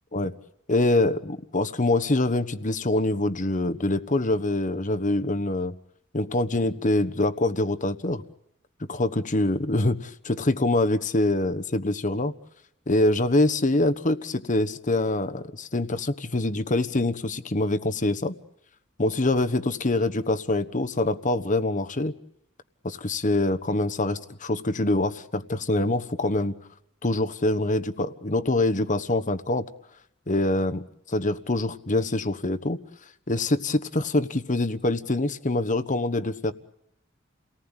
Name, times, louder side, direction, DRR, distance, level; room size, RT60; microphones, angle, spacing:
voice 1, 0.7-5.7 6.1-8.2 8.8-12.3 12.9-18.3 19.0-22.1 23.0-26.6 27.0-29.6 30.3-32.8 33.3-36.5, left 2 dB, 40° left, 10 dB, 1.2 m, -25 dB
29.5 x 19.0 x 9.0 m, 0.79 s
head